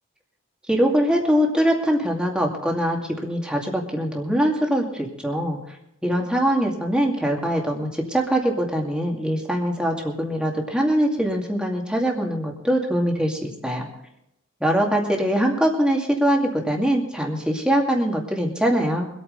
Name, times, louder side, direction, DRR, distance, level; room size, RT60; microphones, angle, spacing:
voice 1, 0.7-5.6 6.0-13.9 14.6-19.1, equal, 5° right, 0 dB, 2.2 m, -22 dB
24.0 x 9.1 x 4.0 m, 0.85 s
head